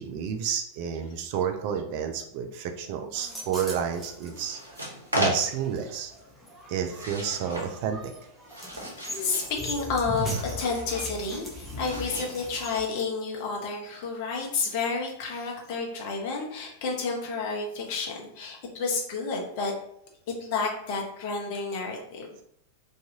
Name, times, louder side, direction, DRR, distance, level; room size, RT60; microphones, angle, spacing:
voice 1, 0.0-4.6 5.2-6.1 6.7-8.1, right 8 dB, 45° right, 6 dB, 0.3 m, -30 dB
sound 1, 3.1-12.9, equal, 5° left, 0.8 m, -39 dB
sound 2, 4.3-5.8 6.8-7.7 8.2-9.5 10.2-11.1 11.8-13.0, equal, 80° right, 0.7 m, -34 dB
voice 2, 9.2-19.7 20.4-22.3, left 4 dB, 45° left, 0 dB, 0.7 m, -30 dB
2.6 x 2.3 x 2.7 m, 0.72 s
figure-of-eight pair, 90°, 0 cm